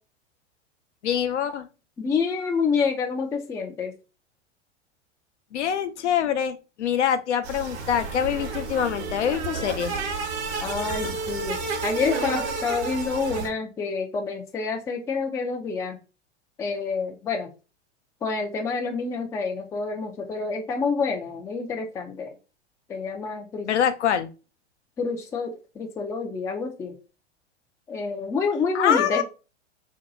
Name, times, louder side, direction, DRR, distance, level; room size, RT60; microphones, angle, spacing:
voice 1, 1.0-1.7 5.5-10.0 23.6-24.3 28.7-29.2, left 9 dB, 75° left, 8 dB, 0.6 m, -25 dB
voice 2, 2.0-3.9 10.6-16.0 16.6-17.5 18.2-22.3 22.9-23.7 25.0-27.0 27.9-29.2, left 4 dB, 10° left, 3 dB, 0.3 m, -28 dB
sound 1, 7.4-13.5, right 4 dB, 65° right, 1.1 m, -31 dB
2.7 x 2.2 x 3.9 m, 0.32 s
hypercardioid pair, 95°, 35 cm